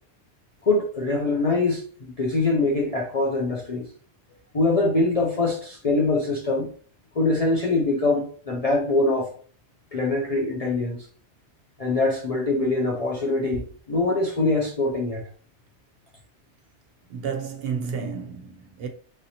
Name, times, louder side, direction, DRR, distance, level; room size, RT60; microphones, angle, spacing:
voice 1, 0.7-1.8 2.2-3.9 4.5-6.7 7.2-9.3 9.9-11.1 11.8-15.2, left 2 dB, 50° left, 0.4 m, -23 dB
voice 2, 17.1-18.9, right 6 dB, 65° right, 0.7 m, -31 dB
3.2 x 2.7 x 2.7 m
omnidirectional pair, 1.2 m